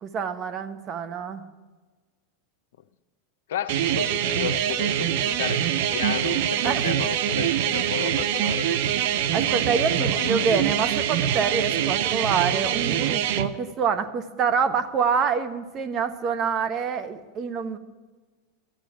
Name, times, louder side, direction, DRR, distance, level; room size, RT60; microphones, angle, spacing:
voice 1, 0.0-1.5 6.6-6.9 9.3-17.8, right 6 dB, 40° right, 1.2 m, -26 dB
voice 2, 3.5-9.2 9.5-9.7 10.0-10.8, left 10 dB, 75° left, 0.7 m, -33 dB
sound 1, 3.7-13.5, right 10 dB, 65° right, 0.8 m, -24 dB
13.0 x 8.7 x 8.7 m
hypercardioid pair, 100°, 0 cm